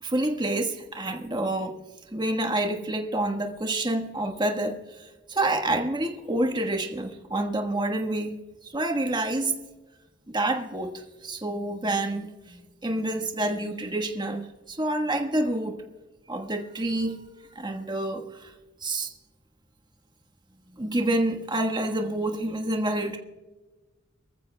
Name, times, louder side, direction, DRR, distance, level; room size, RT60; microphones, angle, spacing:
voice 1, 0.0-1.7 2.1-8.3 8.6-9.5 10.3-10.9 11.2-15.8 16.3-17.2 17.5-18.5 18.8-19.1 20.7-23.2, right 1 dB, 25° right, 3 dB, 1.4 m, -28 dB
24.0 x 14.5 x 2.2 m, 1.2 s
head